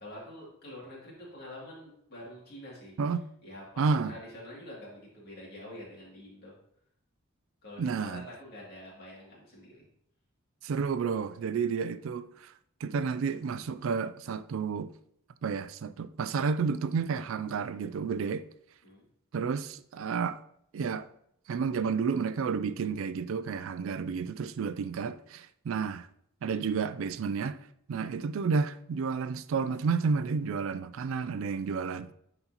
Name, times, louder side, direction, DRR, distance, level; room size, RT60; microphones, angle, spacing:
voice 1, 0.0-3.0 3.4-6.5 7.6-9.8 18.8-19.1, left 1 dB, 45° left, 2.5 m, -46 dB
voice 2, 3.8-4.1 7.8-8.2 10.6-12.5 12.8-14.9 15.4-18.5 19.3-20.4 20.7-21.1 21.5-26.1 26.4-27.6 27.9-32.1, right 5 dB, 65° right, 0.3 m, -31 dB
9.6 x 4.1 x 2.9 m
head